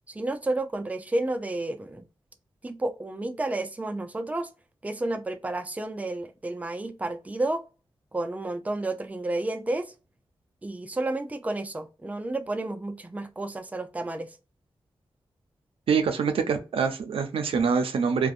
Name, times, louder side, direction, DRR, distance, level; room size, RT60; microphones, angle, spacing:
voice 1, 0.1-2.1 2.6-4.5 4.8-7.6 8.1-9.9 10.6-14.3, right 2 dB, 15° right, 0.4 m, -31 dB
voice 2, 15.9-18.3, right 5 dB, 85° right, 0.4 m, -25 dB
2.5 x 2.2 x 2.4 m
cardioid pair, 70°, 9 cm